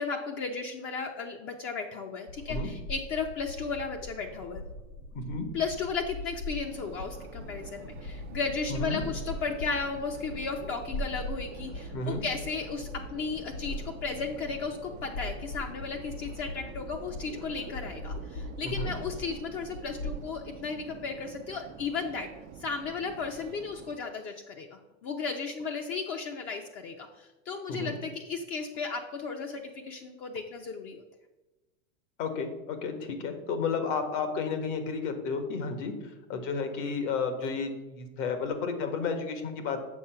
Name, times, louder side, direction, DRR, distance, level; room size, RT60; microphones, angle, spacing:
voice 1, 0.0-4.6 5.5-22.3 22.6-24.7 25.0-31.0, left 5 dB, 30° left, 3 dB, 0.7 m, -35 dB
sound 1, 2.3-20.2, left 1 dB, 80° left, 2.8 m, -40 dB
voice 2, 5.1-5.5 8.7-9.0 11.9-12.2 18.6-18.9 27.7-27.9 32.2-39.8, left 4 dB, 60° left, 7 dB, 1.7 m, -32 dB
Subway metro underground, 6.6-24.0, right 8 dB, 25° right, 0.4 m, -48 dB
7.3 x 5.7 x 5.7 m, 1.1 s
supercardioid pair, 140°, 41 cm